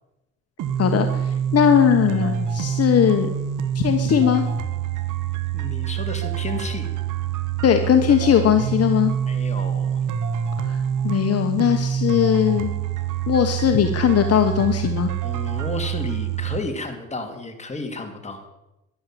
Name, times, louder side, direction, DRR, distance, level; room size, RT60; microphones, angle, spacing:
sound 1, 0.6-16.6, right 9 dB, 85° right, 1.1 m, -26 dB
voice 1, 1.5-3.3 3.7-4.4 7.6-9.1 11.0-12.7 13.3-15.1, left 9 dB, 55° left, 6 dB, 1.1 m, -19 dB
voice 2, 5.5-6.9 9.3-10.0 15.2-18.5, left 3 dB, 20° left, 4 dB, 2.7 m, -32 dB
11.0 x 11.0 x 7.5 m, 0.94 s
cardioid pair, 90°, 30 cm